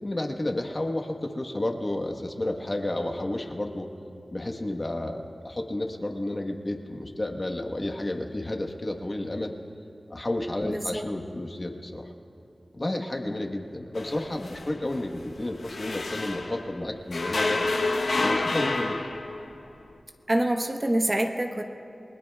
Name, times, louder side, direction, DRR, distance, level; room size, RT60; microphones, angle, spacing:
voice 1, 0.0-3.9 4.3-9.5 10.1-12.1 12.7-17.6 18.1-19.0, left 1 dB, 35° left, 3 dB, 1.2 m, -31 dB
voice 2, 10.6-11.0 20.3-21.6, right 1 dB, 25° right, 4 dB, 1.1 m, -26 dB
sound 1, 14.0-16.7 17.1-19.6, left 3 dB, 90° left, 1.0 m, -29 dB
29.5 x 20.5 x 2.3 m, 2.8 s
wide cardioid pair, 95°, 0 cm